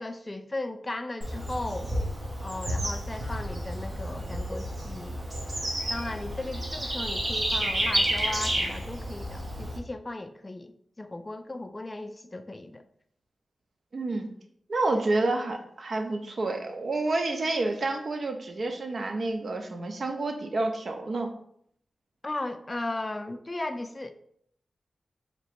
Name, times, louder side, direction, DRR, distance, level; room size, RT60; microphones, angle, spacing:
voice 1, 0.0-1.9 2.4-5.2 5.9-12.8 22.2-24.1, left 2 dB, 25° left, 9 dB, 0.3 m, -36 dB
Bird / Insect, 1.2-9.8, right 1 dB, 45° right, 1.0 m, -31 dB
voice 2, 13.9-14.3 14.7-21.3, right 2 dB, 60° right, 4 dB, 0.6 m, -29 dB
3.0 x 2.9 x 4.4 m, 0.68 s
wide cardioid pair, 90°, 0 cm